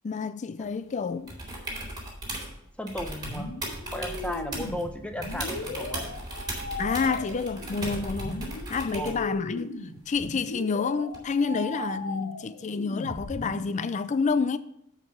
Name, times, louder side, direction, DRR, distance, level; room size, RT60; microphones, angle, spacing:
voice 1, 0.0-1.3 6.8-9.7 10.1-14.6, left 5 dB, 35° left, 0.4 m, -29 dB
sound 1, 1.3-2.5 2.9-4.8 5.2-9.2 11.1-11.2, right 1 dB, 20° right, 2.4 m, -37 dB
voice 2, 2.8-3.5 3.9-6.1 8.8-9.3, left 1 dB, 5° left, 0.8 m, -35 dB
sound 2, 3.2-13.7, left 2 dB, 80° left, 1.3 m, -37 dB
9.6 x 4.8 x 5.7 m
head